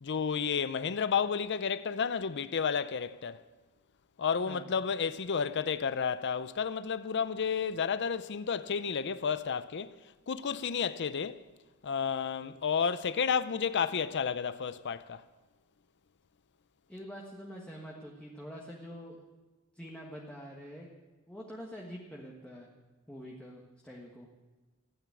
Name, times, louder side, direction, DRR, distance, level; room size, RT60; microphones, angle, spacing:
voice 1, 0.0-3.4 4.2-9.9 10.3-11.4 11.8-15.2, left 6 dB, 55° left, 0.6 m, -31 dB
voice 2, 16.9-19.2 19.7-20.9 21.3-22.7 23.1-24.3, equal, 5° left, 1.5 m, -45 dB
15.5 x 9.2 x 8.4 m
head